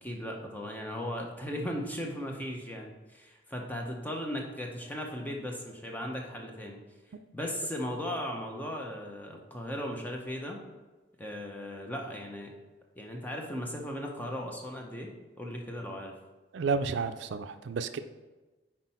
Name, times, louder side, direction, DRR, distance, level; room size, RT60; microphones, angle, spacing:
voice 1, 0.0-6.8 7.3-10.6 11.2-12.5 13.0-15.1 15.4-16.1, equal, 10° left, 1 dB, 0.7 m, -37 dB
voice 2, 16.5-18.0, right 4 dB, 75° right, 10 dB, 0.4 m, -31 dB
6.0 x 4.4 x 4.2 m, 1.2 s
head